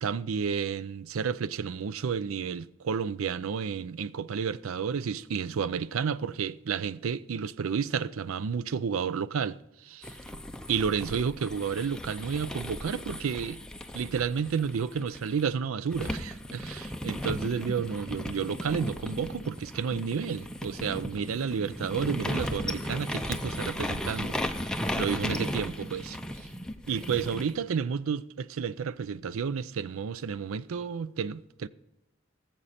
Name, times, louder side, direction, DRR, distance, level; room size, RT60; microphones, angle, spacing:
voice 1, 0.0-10.2 10.7-13.6 13.9-26.5 26.9-31.7, right 6 dB, 80° right, 0.4 m, -31 dB
sound 1, 10.0-15.4 15.9-27.5, equal, 5° left, 0.6 m, -36 dB
19.0 x 7.5 x 4.2 m
head